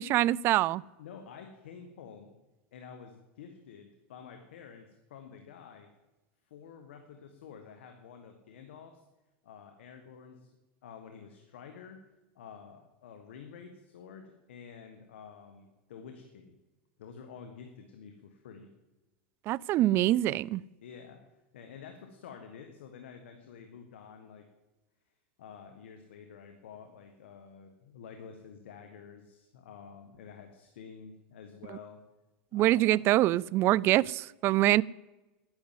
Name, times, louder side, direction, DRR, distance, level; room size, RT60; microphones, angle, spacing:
voice 1, 0.0-0.8 19.5-20.6 32.5-34.8, right 15 dB, 40° right, 0.3 m, -25 dB
voice 2, 1.0-2.3 2.7-5.9 6.5-9.0 9.4-10.5 10.8-12.1 12.3-16.5 17.0-18.7 20.8-21.2 21.5-24.5 25.4-32.0 32.5-33.2, left 6 dB, 85° left, 1.4 m, -49 dB
11.0 x 9.7 x 7.4 m
supercardioid pair, 125°, 6 cm